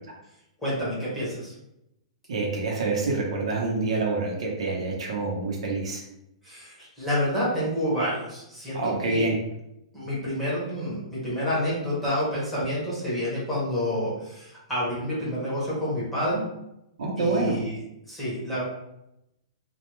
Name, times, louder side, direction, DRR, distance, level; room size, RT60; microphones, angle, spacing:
voice 1, 0.6-1.5 6.4-9.3 9.9-16.4 17.2-17.8 18.1-18.6, equal, 5° left, -10 dB, 0.7 m, -28 dB
voice 2, 2.3-6.0 8.7-9.4 17.0-17.6, right 3 dB, 70° right, -2 dB, 0.7 m, -26 dB
2.2 x 2.2 x 2.9 m, 0.85 s
hypercardioid pair, 180°, 3 cm